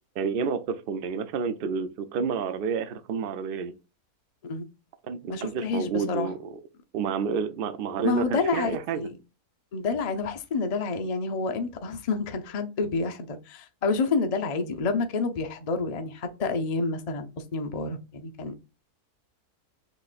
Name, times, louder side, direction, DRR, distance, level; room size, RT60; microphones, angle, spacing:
voice 1, 0.2-3.7 5.0-6.5 6.9-9.1, right 6 dB, 75° right, 0.5 m, -30 dB
voice 2, 5.3-6.3 8.0-9.1 9.7-17.3 17.5-18.5, left 4 dB, 75° left, 0.3 m, -29 dB
6.2 x 3.0 x 2.4 m
omnidirectional pair, 1.7 m